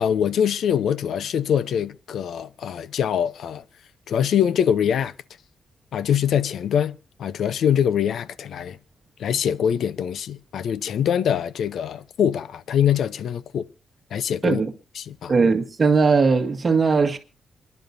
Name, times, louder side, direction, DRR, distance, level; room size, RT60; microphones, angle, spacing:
voice 1, 0.0-3.6 4.1-5.1 5.9-8.8 9.2-13.6 14.1-14.6 15.0-15.3, left 8 dB, 70° left, 0.6 m, -23 dB
voice 2, 15.3-17.2, right 4 dB, 30° right, 1.7 m, -19 dB
28.5 x 11.0 x 2.7 m
wide cardioid pair, 155°, 0 cm